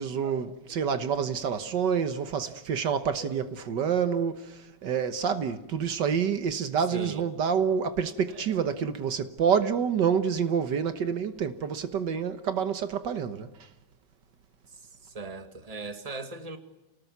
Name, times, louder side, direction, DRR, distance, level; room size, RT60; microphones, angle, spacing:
voice 1, 0.0-13.5, right 7 dB, 80° right, 1.9 m, -28 dB
voice 2, 6.9-7.3 8.3-8.5 15.1-16.6, right 3 dB, 20° right, 1.9 m, -39 dB
28.5 x 19.0 x 9.5 m
omnidirectional pair, 1.9 m